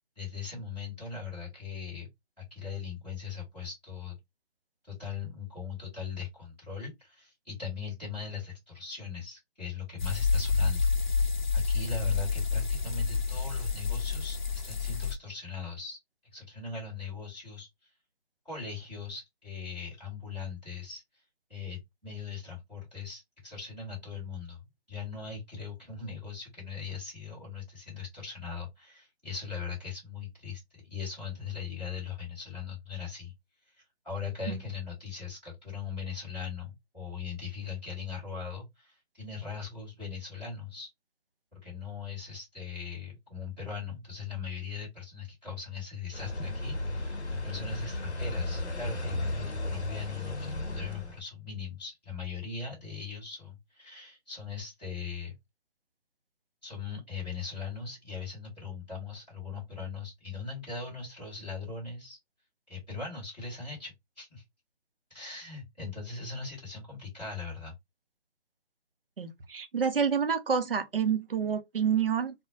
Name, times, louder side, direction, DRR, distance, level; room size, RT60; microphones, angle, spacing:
voice 1, 0.1-2.1 2.4-4.2 4.9-10.9 11.5-16.0 16.3-17.7 18.4-21.0 21.5-24.6 24.9-33.3 33.7-40.9 41.5-55.3 56.6-62.2 62.7-64.4 65.1-67.7, left 5 dB, 5° right, 0.7 m, -40 dB
sound 1, 10.0-15.1, left 4 dB, 45° left, 0.5 m, -28 dB
sound 2, 46.1-51.2, left 1 dB, 85° left, 0.8 m, -34 dB
voice 2, 69.2-72.3, right 7 dB, 60° right, 0.6 m, -28 dB
2.2 x 2.0 x 2.7 m
figure-of-eight pair, 155°, 33 cm